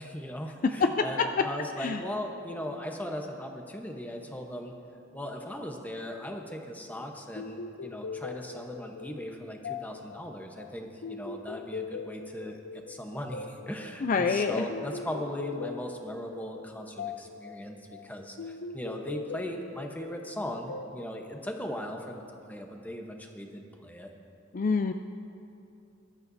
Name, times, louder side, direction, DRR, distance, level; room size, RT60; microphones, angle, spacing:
voice 1, 0.0-4.7 5.1-24.1, equal, 10° left, 2 dB, 1.0 m, -38 dB
voice 2, 0.6-1.5 1.8-2.0 14.0-14.7 24.5-24.9, left 4 dB, 45° left, 7 dB, 0.4 m, -26 dB
sound 1, 7.4-22.1, left 5 dB, 90° left, 0.6 m, -42 dB
21.5 x 12.0 x 2.7 m, 2.8 s
head